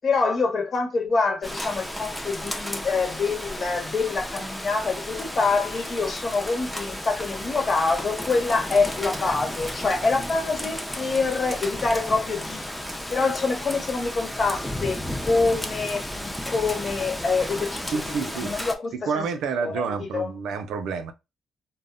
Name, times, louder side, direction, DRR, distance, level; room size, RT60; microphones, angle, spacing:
voice 1, 0.0-12.6 13.1-19.2 19.6-20.3, left 4 dB, 45° left, 1.0 m, -26 dB
Rain, 1.4-18.8, left 1 dB, 5° left, 0.5 m, -33 dB
voice 2, 17.9-18.5 18.9-21.1, right 5 dB, 80° right, 0.4 m, -29 dB
2.0 x 2.0 x 3.6 m
cardioid pair, 90°, 0 cm